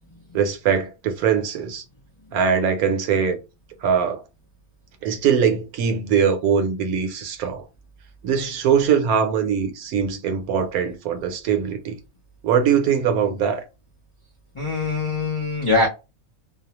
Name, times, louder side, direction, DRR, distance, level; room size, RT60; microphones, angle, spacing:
voice 1, 0.3-1.8 2.3-3.4 3.8-4.2 5.0-7.6 8.2-11.9 12.4-13.6, right 7 dB, 75° right, 1.1 m, -21 dB
voice 2, 14.5-15.9, left 3 dB, 55° left, 0.3 m, -22 dB
2.7 x 2.0 x 2.8 m
omnidirectional pair, 1.6 m